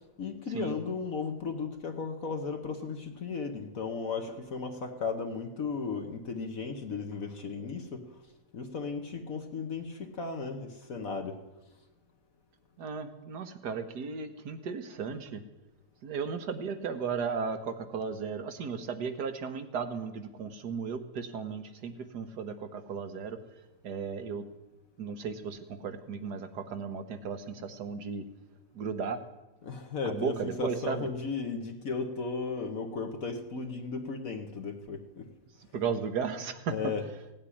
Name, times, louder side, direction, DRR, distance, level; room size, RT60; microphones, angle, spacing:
voice 1, 0.0-8.2 8.5-11.4 29.6-35.3 36.7-37.0, left 4 dB, 60° left, 4 dB, 1.5 m, -35 dB
voice 2, 12.8-15.4 16.0-23.4 23.8-24.5 25.0-28.2 28.7-29.2 30.0-31.1 35.7-36.9, right 5 dB, 80° right, 9 dB, 1.7 m, -35 dB
17.0 x 7.5 x 9.8 m, 1.1 s
omnidirectional pair, 1.7 m